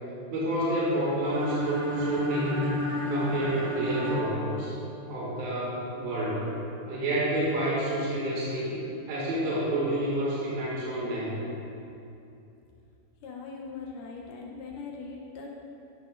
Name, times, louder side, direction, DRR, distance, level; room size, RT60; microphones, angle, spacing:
voice 1, 0.3-2.7 3.1-4.7 5.1-6.5 6.9-8.8 9.1-11.3, right 1 dB, 70° right, -6 dB, 3.9 m, -29 dB
sound 1, 1.3-5.2, equal, 40° right, 2.5 m, -31 dB
voice 2, 13.2-15.5, left 4 dB, 70° left, -1 dB, 2.2 m, -40 dB
13.0 x 11.5 x 2.6 m, 2.7 s
omnidirectional pair, 4.3 m